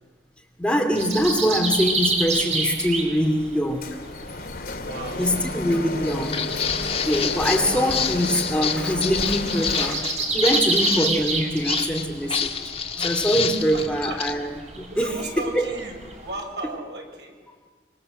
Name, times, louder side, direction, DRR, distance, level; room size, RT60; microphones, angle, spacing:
voice 1, 0.6-4.0 5.2-6.5 7.0-15.2 15.5-15.7, equal, 5° left, 3 dB, 2.6 m, -24 dB
sound 1, 0.9-16.3, right 3 dB, 40° right, 5.7 m, -30 dB
Printer, 3.8-10.0, left 2 dB, 55° left, 2.4 m, -32 dB
voice 2, 4.7-5.3 7.6-8.1 13.7-14.3 14.9-17.3, right 2 dB, 75° right, 2 dB, 6.5 m, -35 dB
Walk footsteps, 6.0-14.3, left 7 dB, 35° left, 1.8 m, -28 dB
26.0 x 26.0 x 7.9 m, 1.5 s
head